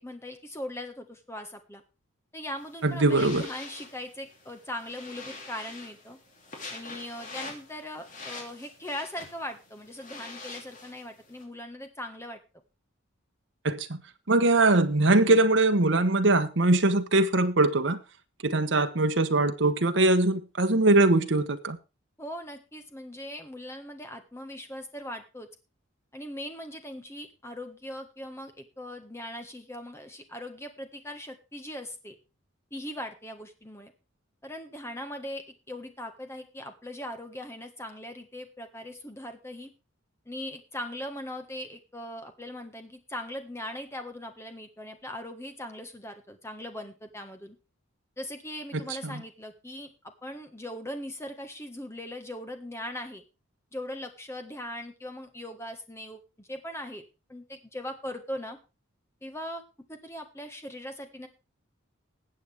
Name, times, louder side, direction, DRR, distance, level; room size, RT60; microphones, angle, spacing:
voice 1, 0.0-1.8 2.3-6.2 6.7-12.4 22.2-25.5 26.1-32.1 32.7-33.9 34.4-39.7 40.2-47.6 48.2-49.9 50.2-53.2 53.7-57.0 57.3-58.6 59.2-59.6 59.9-61.3, left 1 dB, 15° left, 1.5 m, -40 dB
sound 1, 2.6-11.4, left 3 dB, 40° left, 2.9 m, -45 dB
voice 2, 2.8-3.4 13.6-14.0 14.3-18.0 18.4-21.8 48.7-49.2, right 2 dB, 60° right, 1.1 m, -22 dB
20.0 x 7.9 x 3.5 m
head